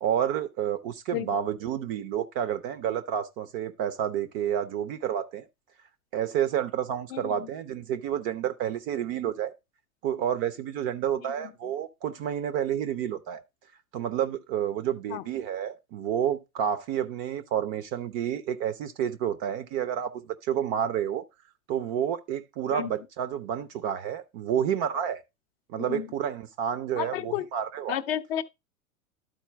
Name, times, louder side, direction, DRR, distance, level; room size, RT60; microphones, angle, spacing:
voice 1, 0.0-5.5 6.1-9.5 10.0-13.4 13.9-21.2 21.7-25.2 25.7-28.0, right 9 dB, 25° right, 0.5 m, -30 dB
voice 2, 27.0-27.5 27.9-28.4, left 11 dB, 45° left, 0.6 m, -31 dB
11.5 x 4.3 x 3.2 m
figure-of-eight pair, 95°, 43 cm